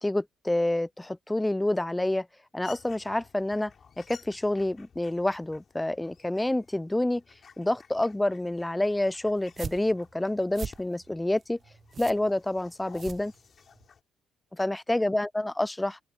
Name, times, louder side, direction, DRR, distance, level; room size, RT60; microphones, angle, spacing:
voice 1, 0.0-2.3 2.5-3.7 4.0-7.2 7.6-11.6 12.0-13.3 14.5-16.0, left 1 dB, 10° left, 0.5 m, -28 dB
Australian Magpie, 2.6-14.0, left 6 dB, 50° left, 7.1 m, -55 dB
sound 1, 9.4-13.9, right 6 dB, 45° right, 0.6 m, -42 dB
open air
cardioid pair, 90°, 0 cm